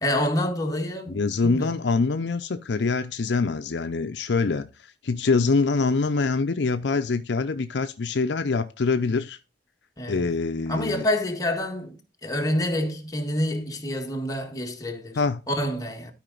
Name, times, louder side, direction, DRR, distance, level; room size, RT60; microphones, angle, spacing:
voice 1, 0.0-1.7 10.0-10.3 10.7-15.2 15.5-16.1, left 1 dB, 20° left, 1.6 m, -27 dB
voice 2, 1.1-4.7 5.0-9.4 10.1-11.1 15.2-15.4, left 4 dB, 70° left, 0.5 m, -24 dB
12.0 x 5.0 x 3.9 m
head